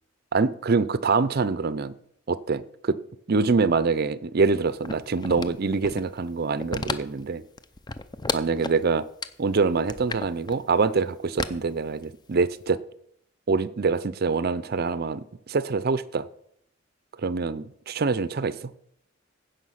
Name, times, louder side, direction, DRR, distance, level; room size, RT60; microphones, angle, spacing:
voice 1, 0.3-1.9 2.3-3.0 3.3-7.4 8.3-9.1 9.4-12.8 13.5-16.3 17.2-18.7, right 4 dB, 50° right, 16 dB, 0.5 m, -25 dB
sound 1, 4.8-6.2 6.6-7.3 7.6-8.8 9.2-9.3 9.8-10.5 11.4-12.3 12.7-12.8, left 3 dB, 20° left, 0.5 m, -32 dB
15.5 x 5.5 x 5.8 m, 0.71 s
head